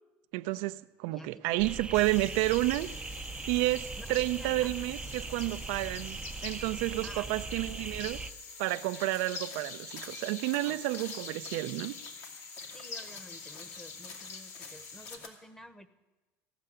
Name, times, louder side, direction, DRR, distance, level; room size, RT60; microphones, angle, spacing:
voice 1, 0.3-2.9 3.5-8.2 8.6-11.9, right 18 dB, 85° right, 0.4 m, -30 dB
voice 2, 1.1-1.7 4.0-4.7 7.0-7.3 7.5-7.6 10.6-10.8 12.7-15.9, equal, 5° left, 0.9 m, -51 dB
sound 1, 1.6-8.3, right 4 dB, 15° right, 0.4 m, -40 dB
sound 2, 1.9-15.2, left 4 dB, 50° left, 1.6 m, -45 dB
sound 3, 9.1-15.3, left 4 dB, 75° left, 2.5 m, -51 dB
15.5 x 6.7 x 10.0 m
cardioid pair, 125°, 6 cm